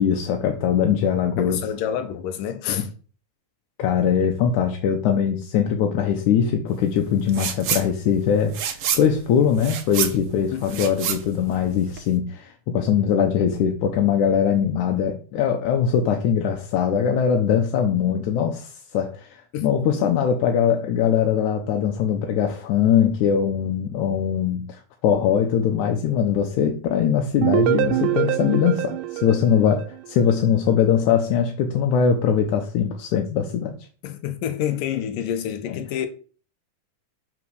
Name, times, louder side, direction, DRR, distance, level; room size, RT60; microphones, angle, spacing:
voice 1, 0.0-1.6 2.7-2.8 3.8-8.6 9.0-33.7 35.7-35.8, left 8 dB, 75° left, 2.2 m, -21 dB
voice 2, 1.4-2.9 10.5-10.9 19.5-19.9 34.0-36.1, left 9 dB, 90° left, 2.5 m, -28 dB
sound 1, 7.3-7.9 8.2-12.1, right 8 dB, 65° right, 1.5 m, -28 dB
sound 2, 27.4-30.4, right 15 dB, 85° right, 2.1 m, -24 dB
6.0 x 5.2 x 6.2 m
omnidirectional pair, 3.7 m